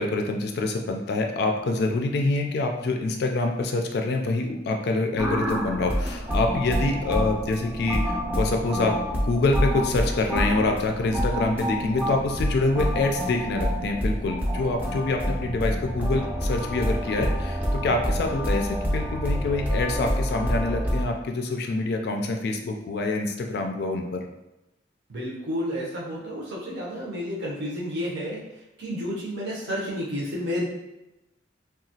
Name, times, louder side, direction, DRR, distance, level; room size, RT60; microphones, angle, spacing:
voice 1, 0.0-9.0 9.2-24.2, left 2 dB, 60° left, 3 dB, 0.3 m, -26 dB
sound 1, 5.2-21.0, equal, 10° right, 0.5 m, -27 dB
voice 2, 25.1-30.7, equal, 65° right, -5 dB, 0.7 m, -31 dB
2.8 x 2.3 x 2.7 m, 0.96 s
head